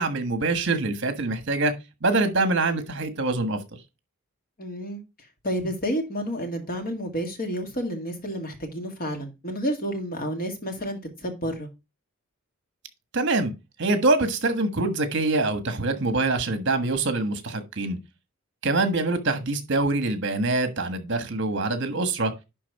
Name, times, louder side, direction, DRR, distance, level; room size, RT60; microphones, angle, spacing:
voice 1, 0.0-1.7 2.0-3.6 13.1-13.5 13.8-18.0 18.6-22.3, right 2 dB, 55° right, 1.4 m, -24 dB
voice 2, 4.6-5.0 5.4-11.7, equal, 45° left, 1.9 m, -30 dB
11.0 x 3.7 x 4.7 m
head